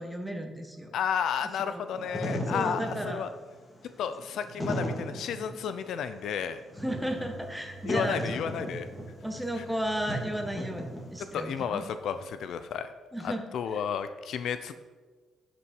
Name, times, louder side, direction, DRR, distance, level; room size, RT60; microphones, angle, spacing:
voice 1, 0.0-0.9 1.7-2.2 2.5-3.2 6.8-8.7 9.2-11.8 13.1-13.4, equal, 5° right, 3 dB, 1.4 m, -34 dB
voice 2, 0.9-3.3 4.0-6.6 7.8-8.9 9.6-9.7 11.3-12.9 13.2-14.8, left 7 dB, 75° left, 11 dB, 0.5 m, -32 dB
Wind / Fire, 1.9-11.4, equal, 20° left, 2.4 m, -36 dB
sound 1, 6.8-12.7, right 2 dB, 60° right, 2.4 m, -49 dB
11.5 x 6.0 x 4.6 m, 1.4 s
cardioid pair, 90°, 0 cm